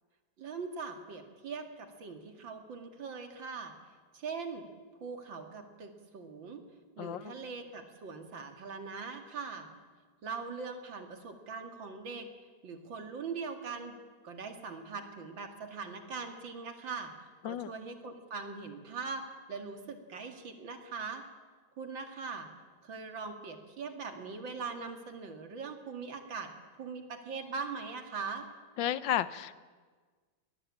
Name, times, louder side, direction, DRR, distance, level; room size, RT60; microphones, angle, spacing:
voice 1, 0.4-3.7 4.1-4.7 5.0-6.6 7.0-9.7 10.2-12.3 12.6-14.0 14.2-17.1 17.4-21.2 21.8-22.5 22.8-26.5 26.8-28.5, right 4 dB, 90° right, 6 dB, 2.9 m, -41 dB
voice 2, 7.0-7.3 17.4-17.7 28.8-29.6, left 11 dB, 80° left, 15 dB, 1.6 m, -32 dB
23.0 x 19.5 x 8.7 m, 1.5 s
omnidirectional pair, 2.0 m